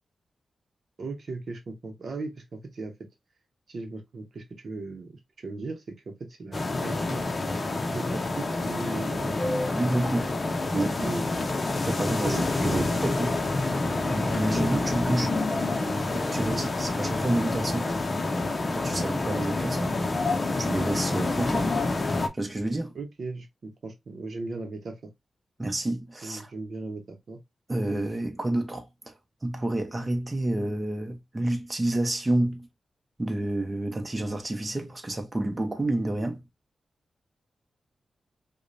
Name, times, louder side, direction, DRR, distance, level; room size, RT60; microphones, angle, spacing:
voice 1, 1.0-2.9 3.7-7.2 7.9-9.6 11.0-11.3 12.2-13.0 16.5-16.6 22.9-25.0 26.2-27.4, right 3 dB, 60° right, 0.8 m, -37 dB
sound 1, 6.5-22.3, left 2 dB, 40° left, 0.6 m, -28 dB
voice 2, 9.7-10.4 10.7-11.1 11.8-13.3 14.1-15.4 16.1-17.9 18.7-20.0 20.6-21.7 22.3-22.9 25.6-26.5 27.7-29.1 29.4-32.7 33.2-36.4, right 1 dB, 25° right, 0.8 m, -29 dB
4.8 x 2.2 x 2.6 m
cardioid pair, 80°, 0 cm